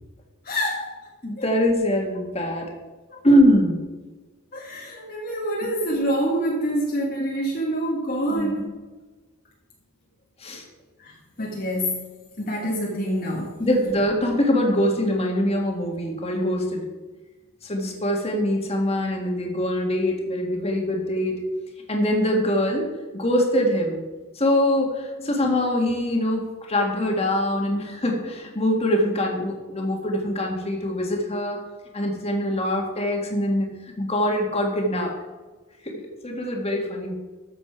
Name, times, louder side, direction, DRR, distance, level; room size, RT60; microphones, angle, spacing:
voice 1, 0.4-0.9 1.4-1.5 3.1-3.2 4.5-8.6 11.0-12.1 12.4-13.5 25.2-25.4, equal, 45° left, -2 dB, 1.5 m, -26 dB
voice 2, 1.2-2.7 3.2-3.8 5.6-5.7 8.3-8.7 10.4-10.6 13.6-16.9 17.6-21.4 21.9-24.0 24.3-31.6 31.9-35.1 35.8-37.1, left 1 dB, 30° left, 1 dB, 2.0 m, -23 dB
13.5 x 7.0 x 4.8 m, 1.3 s
head